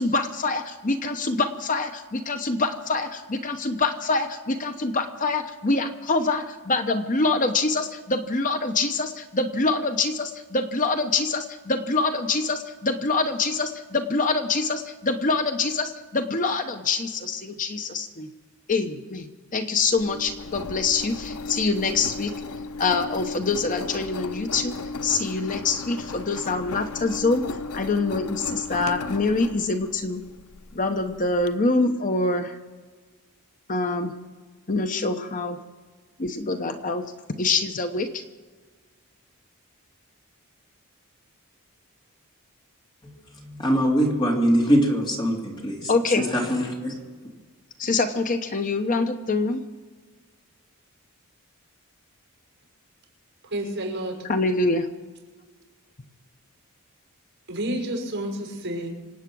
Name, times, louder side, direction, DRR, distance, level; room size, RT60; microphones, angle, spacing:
voice 1, 0.0-18.3 18.7-22.3 22.8-24.8 25.0-27.4 27.7-30.3 30.7-32.6 33.7-34.1 34.7-35.6 36.2-38.2 45.9-46.2 47.8-49.6 54.3-54.9, left 3 dB, 35° left, 0.9 m, -25 dB
Engine, 19.8-31.5, left 3 dB, 80° left, 0.7 m, -36 dB
voice 2, 43.0-47.0, equal, 20° left, 3.1 m, -23 dB
voice 3, 53.4-54.1 57.5-58.9, right 1 dB, 55° right, 6.0 m, -30 dB
26.0 x 8.8 x 6.2 m
head